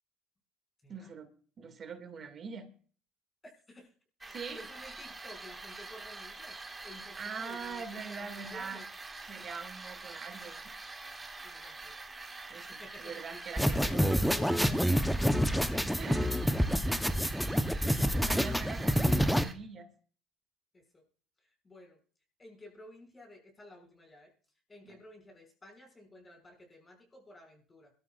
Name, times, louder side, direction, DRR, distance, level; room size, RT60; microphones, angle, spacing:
voice 1, 0.9-1.3 1.6-2.7 4.3-4.6 7.2-8.8 9.3-10.7 12.5-14.2 16.0-16.3 17.8-19.9 24.8-25.0, right 5 dB, 40° right, 7 dB, 2.2 m, -43 dB
voice 2, 4.2-8.9 9.4-9.5 11.4-12.0 12.7-16.4 16.7-16.8 20.7-21.0 21.4-22.0 22.4-24.3 24.7-27.9, left 1 dB, 20° left, 1 dB, 6.0 m, -52 dB
sound 1, 4.2-19.5, right 3 dB, 15° right, 1.8 m, -45 dB
sound 2, 13.6-19.4, equal, ahead, 0.9 m, -27 dB
23.0 x 13.0 x 2.5 m, 0.42 s
supercardioid pair, 100°, 0 cm